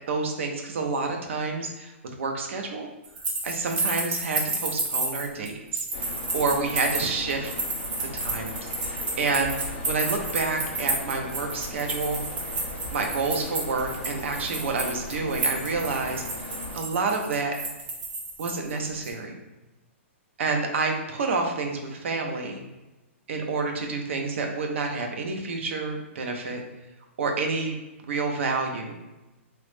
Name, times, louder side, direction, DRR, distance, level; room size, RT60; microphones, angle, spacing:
voice 1, 0.1-2.9 3.4-7.5 8.1-12.2 12.5-12.6 12.9-16.2 16.7-17.5 18.4-19.3 20.4-22.6 23.3-26.6 27.2-27.8 28.1-29.0, right 4 dB, 65° right, 3 dB, 0.6 m, -29 dB
sound 1, 3.0-18.7 19.0-19.1, right 2 dB, 15° right, 0.4 m, -31 dB
sound 2, 5.9-16.8, left 2 dB, 45° left, 0.6 m, -38 dB
2.9 x 2.0 x 3.1 m, 1.1 s
hypercardioid pair, 155°, 7 cm